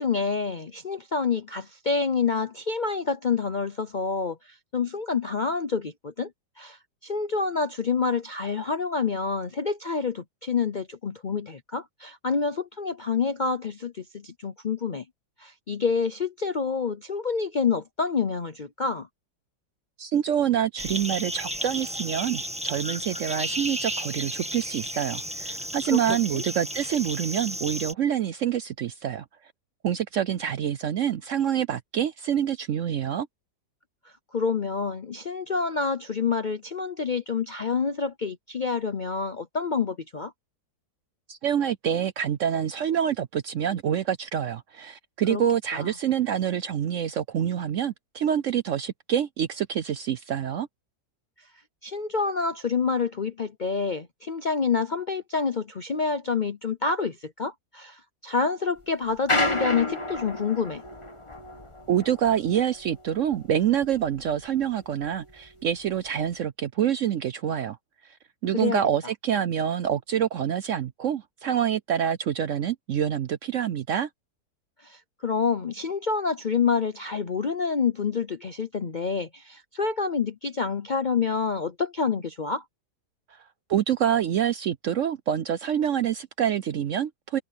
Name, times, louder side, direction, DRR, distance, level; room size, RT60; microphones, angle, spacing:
voice 1, 0.0-6.3 6.6-15.0 15.4-19.1 25.9-26.0 26.3-26.4 34.3-40.3 45.3-45.4 45.7-45.9 51.8-60.8 68.5-68.8 74.8-82.6, left 5 dB, 50° left, 0.6 m, -28 dB
voice 2, 20.0-29.2 29.8-33.3 41.3-50.7 61.9-67.8 68.4-74.1 83.7-87.4, right 9 dB, 65° right, 0.8 m, -26 dB
sound 1, 20.8-27.9, equal, 5° right, 1.5 m, -33 dB
sound 2, 59.1-64.7 65.0-66.3, left 2 dB, 20° left, 1.7 m, -31 dB
omnidirectional pair, 1.8 m